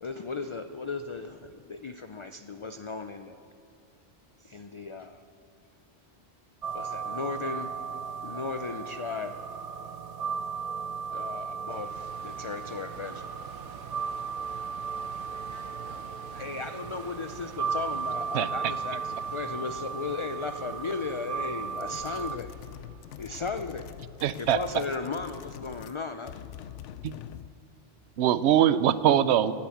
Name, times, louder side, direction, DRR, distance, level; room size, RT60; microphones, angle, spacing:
voice 1, 0.0-3.4 4.4-5.2 6.7-7.7 8.2-9.4 11.1-13.4 16.4-22.5 23.2-23.9 24.4-26.3, left 4 dB, 50° left, 9 dB, 0.3 m, -36 dB
sound 1, 6.6-22.4, right 6 dB, 50° right, 0.5 m, -36 dB
sound 2, 11.7-24.4, right 7 dB, 90° right, 1.2 m, -49 dB
voice 2, 15.3-17.6 18.0-18.1, equal, 15° left, -4 dB, 4.5 m, -54 dB
sound 3, 21.8-26.0 26.3-27.6, left 10 dB, 90° left, 0.9 m, -44 dB
voice 3, 24.2-24.6 27.0-27.2 28.2-29.5, right 10 dB, 70° right, 15 dB, 0.9 m, -22 dB
18.0 x 9.3 x 8.5 m, 2.5 s
omnidirectional pair, 1.2 m